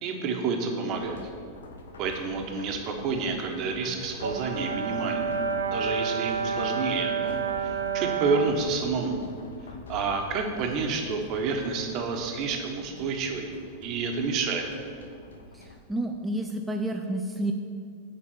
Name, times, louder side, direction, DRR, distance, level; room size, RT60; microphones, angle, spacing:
voice 1, 0.0-1.2 2.0-5.4 5.7-9.2 9.9-13.5 13.8-14.7, right 4 dB, 40° right, 3 dB, 1.2 m, -29 dB
sound 1, 0.8-15.8, left 3 dB, 65° left, 0.8 m, -46 dB
Brass instrument, 4.2-8.6, right 6 dB, 75° right, 0.6 m, -29 dB
voice 2, 15.5-17.5, right 1 dB, 10° right, 4 dB, 0.4 m, -30 dB
7.3 x 5.2 x 7.0 m, 2.3 s
figure-of-eight pair, 90°, 0 cm